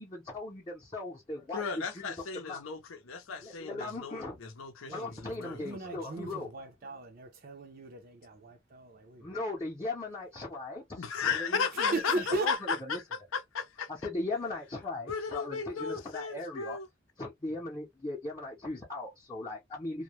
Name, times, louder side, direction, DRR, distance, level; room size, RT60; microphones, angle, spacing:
voice 1, 0.0-2.6 3.4-4.4 4.9-6.5 9.2-12.6 12.9-13.0 13.9-16.8 17.2-20.0, left 2 dB, 20° left, 0.7 m, -38 dB
voice 2, 1.5-6.4 11.0-13.9 15.1-16.9, left 5 dB, 90° left, 0.6 m, -35 dB
voice 3, 4.8-9.5 11.7-12.5, right 2 dB, 45° right, 0.5 m, -38 dB
2.2 x 2.1 x 2.9 m
head